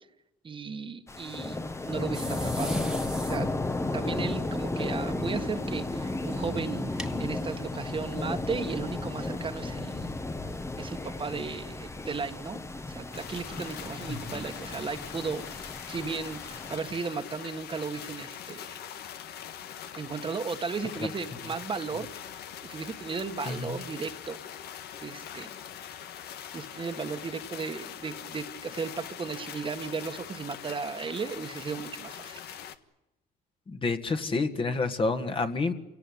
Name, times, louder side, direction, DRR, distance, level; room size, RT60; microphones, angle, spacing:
voice 1, 0.4-1.6 1.8-2.9 3.2-3.5 3.9-10.2 10.8-12.6 12.9-18.8 19.9-22.1 22.6-24.4 25.0-25.6 26.5-32.4, right 5 dB, 30° right, 7 dB, 1.6 m, -35 dB
sound 1, 1.1-16.8, left 2 dB, 15° left, 1.3 m, -34 dB
sound 2, 2.1-7.2, right 1 dB, 5° right, 1.8 m, -39 dB
sound 3, 13.1-32.8, left 9 dB, 75° left, 1.6 m, -42 dB
voice 2, 23.5-23.8 33.7-35.7, left 3 dB, 30° left, 7 dB, 1.9 m, -29 dB
27.5 x 18.0 x 10.0 m, 0.95 s
cardioid pair, 110°, 17 cm